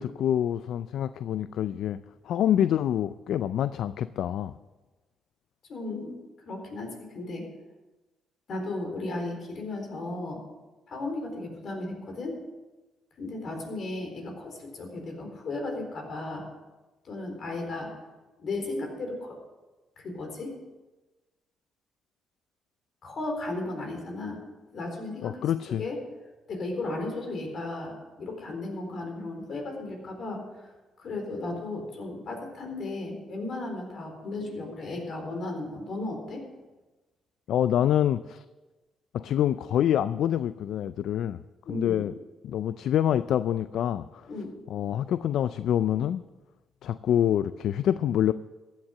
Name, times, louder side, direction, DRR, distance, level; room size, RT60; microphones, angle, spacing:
voice 1, 0.0-2.0 2.2-4.5 25.2-25.8 37.5-38.4 39.1-41.4 41.7-42.1 42.4-44.3 44.7-46.2 46.8-48.3, left 10 dB, 75° left, 14 dB, 0.4 m, -26 dB
voice 2, 5.7-6.1 6.5-7.4 8.5-10.4 10.9-12.4 13.2-16.5 17.0-17.9 18.4-19.4 20.0-20.5 23.0-24.4 24.7-25.4 25.8-26.0 26.5-30.7 31.0-36.4 41.7-42.1 44.3-44.5, left 2 dB, 60° left, 3 dB, 4.1 m, -35 dB
15.0 x 9.0 x 6.5 m, 1.2 s
cardioid pair, 90°, 0 cm